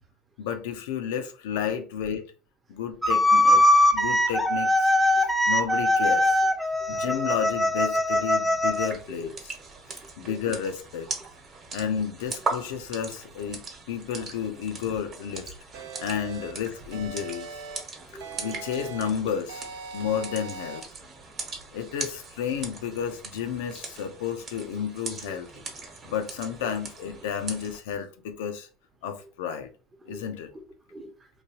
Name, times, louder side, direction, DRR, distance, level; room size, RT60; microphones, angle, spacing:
voice 1, 0.4-2.2 2.7-3.6 3.9-4.9 5.5-6.4 6.9-9.6 10.2-11.1 11.7-13.6 13.9-15.5 16.0-17.6 18.4-19.6 19.9-20.8 21.7-25.5 26.0-28.7 29.0-29.7 30.1-30.5, left 8 dB, 85° left, 0.5 m, -31 dB
sound 1, 3.0-8.9, left 1 dB, ahead, 0.4 m, -21 dB
voice 2, 6.8-7.2 9.2-9.4 10.2-10.4 11.1-11.3 15.9-16.0 17.9-18.6 25.3-25.4 26.0-26.1 26.6-26.7 29.2-29.3 30.0-30.2 30.5-31.3, right 1 dB, 20° right, 0.7 m, -44 dB
sound 2, 8.7-27.8, right 4 dB, 40° right, 1.0 m, -40 dB
sound 3, 15.7-16.5 16.9-17.8 18.2-19.1 19.5-20.8, right 5 dB, 80° right, 0.5 m, -40 dB
3.0 x 2.3 x 2.8 m
supercardioid pair, 110°, 0 cm